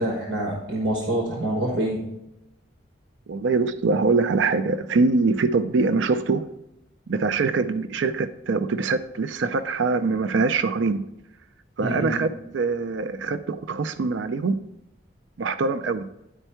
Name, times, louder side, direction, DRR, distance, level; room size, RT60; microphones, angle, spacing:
voice 1, 0.0-2.0 11.8-12.2, right 1 dB, 70° right, -1 dB, 1.3 m, -26 dB
voice 2, 3.3-6.5 7.1-11.0 11.8-14.6 15.4-16.0, right 4 dB, 90° right, 11 dB, 0.4 m, -23 dB
10.0 x 4.5 x 4.4 m, 0.87 s
head